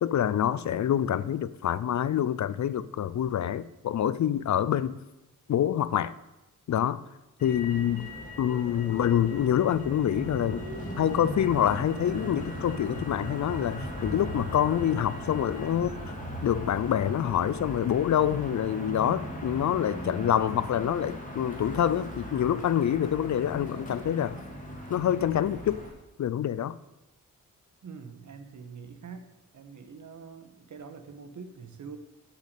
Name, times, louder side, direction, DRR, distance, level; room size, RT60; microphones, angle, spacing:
voice 1, 0.0-5.0 5.5-6.1 6.7-7.0 7.4-8.1 8.4-10.6 11.0-16.2 16.4-24.4 24.9-25.8 26.2-26.8, left 10 dB, 60° left, 0.5 m, -26 dB
Motor vehicle (road), 7.4-25.9, equal, 25° left, 2.4 m, -38 dB
voice 2, 27.8-29.3 29.5-32.0, right 5 dB, 60° right, 1.4 m, -44 dB
8.2 x 6.7 x 8.2 m
wide cardioid pair, 110°, 34 cm